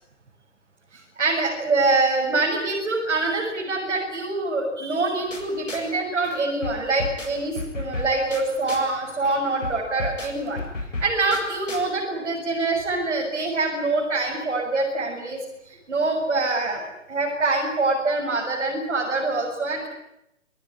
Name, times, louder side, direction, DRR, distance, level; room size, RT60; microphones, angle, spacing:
voice 1, 0.9-10.6 11.0-16.8 17.1-19.9, right 3 dB, 70° right, -2 dB, 7.6 m, -25 dB
sound 1, 5.3-6.0 6.2-9.0 9.2-11.9, left 2 dB, 80° left, 7.5 m, -34 dB
26.0 x 18.0 x 9.9 m, 0.85 s
figure-of-eight pair, 130°, 37 cm